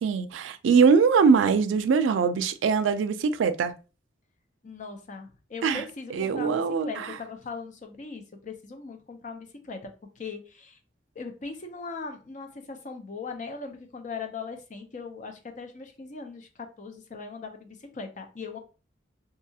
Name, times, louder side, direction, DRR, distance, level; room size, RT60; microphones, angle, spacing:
voice 1, 0.0-3.7 5.6-5.8 6.1-7.1, right 5 dB, 85° right, 0.3 m, -22 dB
voice 2, 4.6-10.8 11.2-18.6, left 4 dB, 40° left, 0.5 m, -39 dB
2.7 x 2.3 x 2.7 m
head